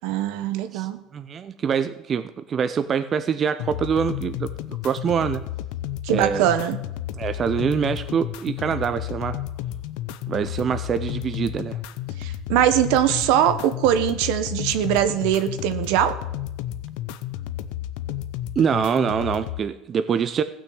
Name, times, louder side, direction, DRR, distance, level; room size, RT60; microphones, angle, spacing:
voice 1, 0.0-1.0 6.0-6.8 12.2-16.2, right 11 dB, 75° right, 1.2 m, -21 dB
voice 2, 1.1-4.5 4.8-5.4 6.1-6.5 7.2-9.4 10.3-11.8 18.6-20.4, right 7 dB, 30° right, 0.6 m, -24 dB
sound 1, 3.6-19.6, left 12 dB, 80° left, 0.7 m, -32 dB
16.0 x 6.3 x 7.9 m
cardioid pair, 145°, 0 cm